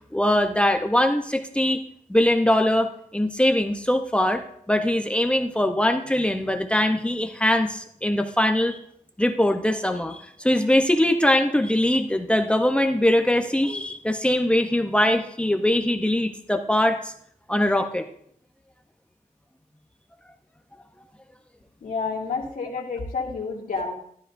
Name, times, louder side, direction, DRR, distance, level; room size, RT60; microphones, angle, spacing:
voice 1, 0.1-1.8 2.1-8.8 9.2-17.1 17.5-18.1, left 1 dB, 10° left, 5 dB, 0.7 m, -22 dB
voice 2, 21.8-24.0, left 4 dB, 80° left, -1 dB, 2.3 m, -29 dB
13.5 x 12.5 x 2.6 m, 0.66 s
wide cardioid pair, 160°, 14 cm